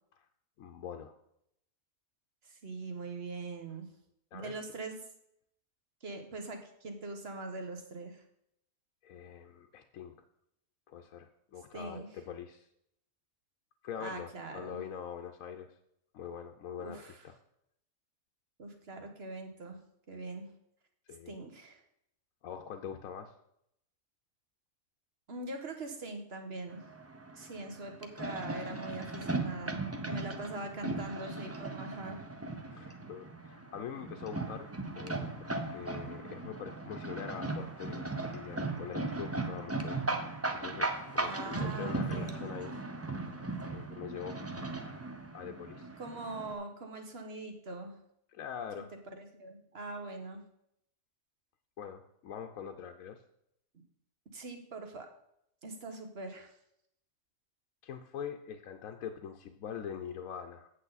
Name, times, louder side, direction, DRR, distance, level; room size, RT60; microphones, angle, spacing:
voice 1, 0.6-1.1 4.3-4.6 9.0-10.1 10.9-12.7 13.8-15.7 16.1-17.4 21.1-21.4 22.4-23.3 32.7-38.1 38.3-40.1 40.6-42.8 43.7-44.4 45.3-45.9 48.3-48.9 51.8-53.2 57.8-60.7, left 8 dB, 75° left, 4 dB, 1.0 m, -43 dB
voice 2, 2.4-3.9 4.3-5.0 6.0-8.2 11.7-12.1 14.0-14.8 16.8-17.2 18.6-19.8 20.1-20.5 21.3-21.8 25.3-26.8 27.4-32.2 41.2-42.5 46.0-48.0 49.1-50.4 54.3-55.1 55.6-56.5, right 2 dB, 50° right, 5 dB, 1.4 m, -42 dB
sound 1, 26.7-46.5, right 2 dB, 20° right, 0.4 m, -38 dB
8.3 x 7.9 x 4.0 m, 0.75 s
omnidirectional pair, 1.4 m